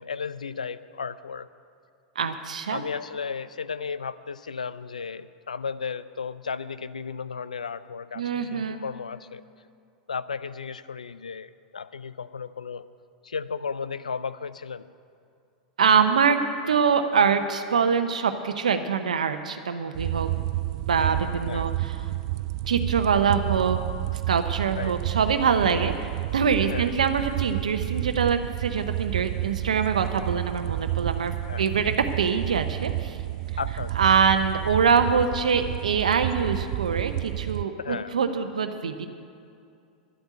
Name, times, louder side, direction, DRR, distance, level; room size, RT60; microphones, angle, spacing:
voice 1, 0.0-1.5 2.7-9.4 10.1-12.9 13.2-14.9 21.4-21.7 24.7-25.0 26.6-26.9 31.5-31.7 33.6-34.1 37.8-38.1, left 5 dB, 85° left, 15 dB, 0.4 m, -34 dB
voice 2, 2.2-2.8 8.2-8.8 15.8-16.4 16.7-20.3 20.9-21.9 22.7-23.8 24.3-25.9 26.3-31.3 31.6-33.2 34.0-39.1, right 6 dB, 80° right, 7 dB, 0.8 m, -24 dB
sound 1, 19.9-37.6, right 16 dB, 55° right, 0.3 m, -30 dB
11.5 x 8.1 x 9.3 m, 2.4 s
hypercardioid pair, 95°, 4 cm